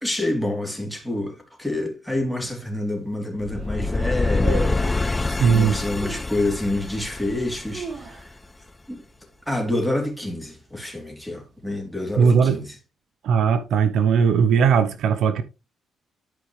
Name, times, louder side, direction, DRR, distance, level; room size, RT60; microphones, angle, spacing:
voice 1, 0.0-5.2 5.5-8.3 8.9-9.0 9.5-12.7, left 1 dB, ahead, 3.2 m, -28 dB
sound 1, 2.4-2.5 3.1-3.2 3.4-3.8 4.4-5.2 5.9-6.3 6.9-7.0 7.5-8.6 8.9-9.0 9.3-9.7 10.1-10.5 11.1-11.9 12.1-12.2, right 5 dB, 50° right, 1.9 m, -36 dB
sound 2, 3.4-8.5, left 3 dB, 20° left, 0.3 m, -26 dB
voice 2, 5.4-5.8 12.2-12.6 13.2-15.4, right 6 dB, 75° right, 0.9 m, -18 dB
12.5 x 5.1 x 3.2 m
cardioid pair, 90°, 0 cm